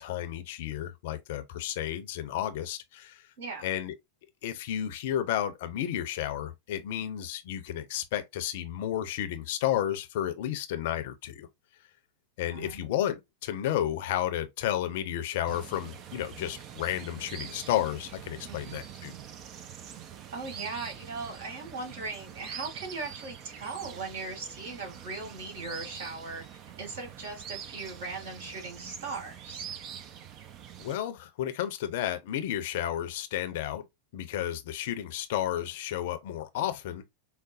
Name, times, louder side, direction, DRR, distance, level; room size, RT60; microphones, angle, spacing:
voice 1, 0.0-3.3 3.6-3.9 4.4-11.5 12.4-19.2 30.8-33.8 34.1-37.0, left 11 dB, 50° left, 0.6 m, -32 dB
voice 2, 3.4-3.7 12.5-12.9 18.4-18.8 20.3-26.4 26.8-29.7, right 3 dB, 60° right, 2.0 m, -39 dB
sound 1, 15.5-31.0, right 9 dB, 35° right, 0.5 m, -45 dB
4.9 x 2.1 x 2.5 m
figure-of-eight pair, 90°, 0 cm